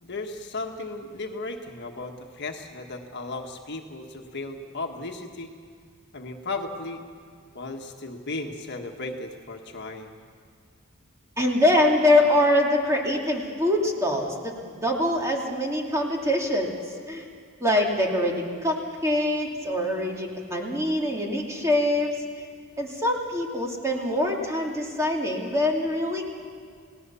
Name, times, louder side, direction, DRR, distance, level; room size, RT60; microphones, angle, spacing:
voice 1, 0.0-5.5 6.1-7.0 7.5-10.1, left 2 dB, 50° left, 3 dB, 1.6 m, -35 dB
voice 2, 11.4-16.7 17.1-17.2 17.6-22.1 22.8-26.2, left 1 dB, 15° right, 0 dB, 2.6 m, -24 dB
30.0 x 18.0 x 7.0 m, 2.2 s
head